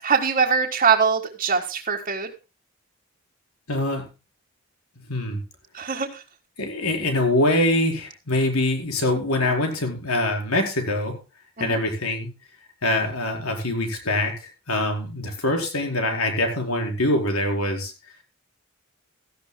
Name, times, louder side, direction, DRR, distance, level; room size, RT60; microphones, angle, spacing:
voice 1, 0.0-2.3 5.7-6.2 11.6-11.8, right 6 dB, 35° right, -2 dB, 1.7 m, -22 dB
voice 2, 3.7-4.1 5.1-5.4 6.6-11.2 11.6-12.3 12.8-17.9, left 1 dB, 90° left, 3 dB, 4.6 m, -24 dB
17.5 x 14.0 x 2.2 m, 0.30 s
head